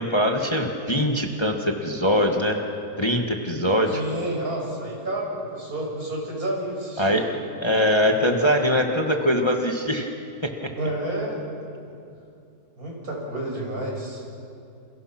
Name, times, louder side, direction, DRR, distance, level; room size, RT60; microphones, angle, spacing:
voice 1, 0.0-2.6 3.0-4.0 7.0-7.3 7.6-10.1 10.4-10.7, equal, 15° left, 3 dB, 1.6 m, -22 dB
voice 2, 3.9-7.2 10.8-11.4 11.9-12.0 12.8-14.2, right 1 dB, 65° right, -2 dB, 6.6 m, -30 dB
28.5 x 28.5 x 6.1 m, 2.4 s
omnidirectional pair, 1.7 m